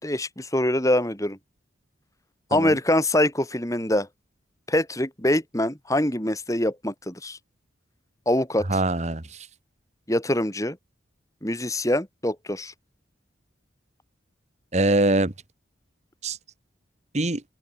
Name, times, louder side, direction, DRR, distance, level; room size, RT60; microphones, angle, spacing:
voice 1, 0.0-1.4 2.5-4.1 4.7-7.4 8.3-8.7 10.1-10.8 11.4-12.7, left 1 dB, 15° left, 4.1 m, -24 dB
voice 2, 8.7-9.5 14.7-15.3 16.2-16.4 17.1-17.4, right 2 dB, 35° right, 1.5 m, -23 dB
open air
head